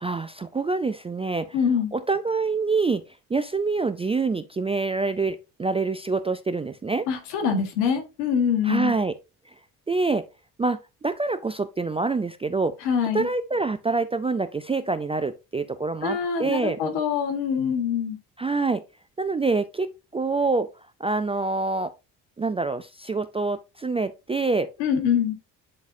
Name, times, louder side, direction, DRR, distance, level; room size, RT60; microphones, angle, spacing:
voice 1, 0.0-1.6 1.9-3.0 3.3-7.1 8.6-9.1 9.9-10.2 10.6-12.8 13.1-16.8 18.4-18.8 19.2-20.7 21.0-21.9 22.4-24.7, right 3 dB, 15° right, 0.3 m, -26 dB
voice 2, 1.5-1.9 7.1-8.9 12.8-13.3 16.0-18.2 24.8-25.3, left 7 dB, 80° left, 1.5 m, -24 dB
9.6 x 4.0 x 2.6 m
hypercardioid pair, 50°, 48 cm